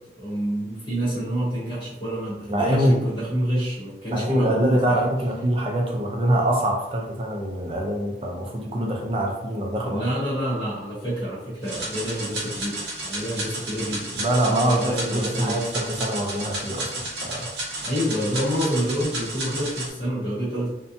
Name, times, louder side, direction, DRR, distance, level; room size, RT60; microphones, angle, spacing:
voice 1, 0.1-5.1 9.8-15.6 17.8-20.7, equal, 30° left, -8 dB, 0.9 m, -27 dB
voice 2, 2.5-3.0 4.1-10.0 14.1-17.5, right 1 dB, 30° right, 1 dB, 0.4 m, -24 dB
sound 1, 11.6-19.9, right 1 dB, 65° right, 1.0 m, -32 dB
2.7 x 2.1 x 2.5 m, 0.89 s
head